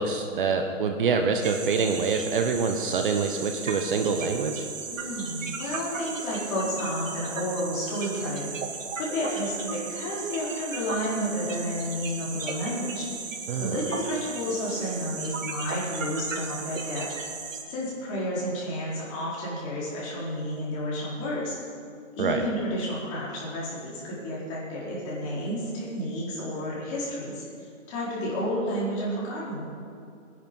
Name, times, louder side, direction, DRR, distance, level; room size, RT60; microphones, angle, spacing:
voice 1, 0.0-4.7 13.5-13.8 22.2-22.5, right 5 dB, 40° right, 5 dB, 1.1 m, -26 dB
sound 1, 1.4-17.6, right 5 dB, 85° right, 2.2 m, -36 dB
voice 2, 4.9-8.5 8.9-17.1 17.7-21.6 22.1-27.4 27.9-29.7, equal, 25° left, -7 dB, 4.6 m, -31 dB
18.5 x 10.5 x 5.5 m, 2.6 s
hypercardioid pair, 165°, 38 cm